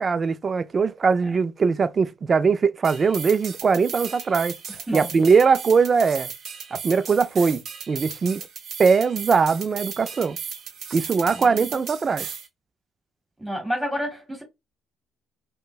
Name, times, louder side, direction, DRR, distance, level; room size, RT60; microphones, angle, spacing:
voice 1, 0.0-4.5 4.9-6.3 6.7-8.4 8.8-10.4 10.9-12.3, right 5 dB, 30° right, 0.3 m, -21 dB
sound 1, 2.8-12.5, right 7 dB, 50° right, 0.9 m, -36 dB
voice 2, 11.2-11.6 13.4-14.4, equal, 5° right, 2.0 m, -29 dB
5.1 x 2.2 x 2.3 m
cardioid pair, 130°, 0 cm